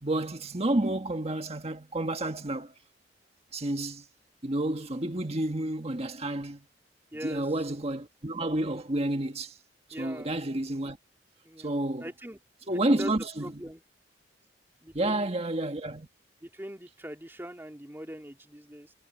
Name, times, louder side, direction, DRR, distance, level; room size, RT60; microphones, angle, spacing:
voice 1, 0.0-2.7 3.5-4.0 4.4-6.6 7.2-9.5 10.0-11.0 11.6-12.1 12.7-13.5 14.9-16.1, right 1 dB, 35° right, 1.6 m, -30 dB
voice 2, 7.1-7.5 9.9-10.3 11.4-11.7 12.0-12.4 12.7-13.8 14.8-15.4 16.4-18.9, equal, 15° right, 2.7 m, -42 dB
head